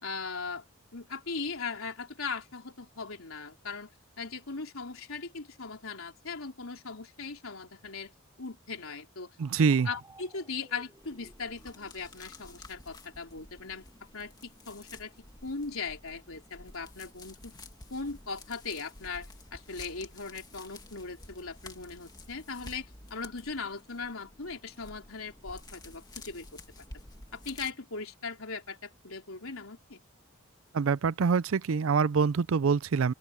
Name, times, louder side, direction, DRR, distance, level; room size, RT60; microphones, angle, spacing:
voice 1, 0.0-0.6 0.9-3.9 4.2-8.1 8.4-9.3 9.8-13.8 14.1-15.1 15.4-17.6 17.9-26.6 27.3-30.0, left 4 dB, 75° left, 3.4 m, -39 dB
sound 1, 9.4-16.9, right 2 dB, 15° right, 6.3 m, -60 dB
voice 2, 9.4-9.9 30.7-33.1, right 5 dB, 70° right, 0.4 m, -25 dB
sound 2, 11.0-27.7, left 2 dB, 20° left, 2.1 m, -51 dB
open air
head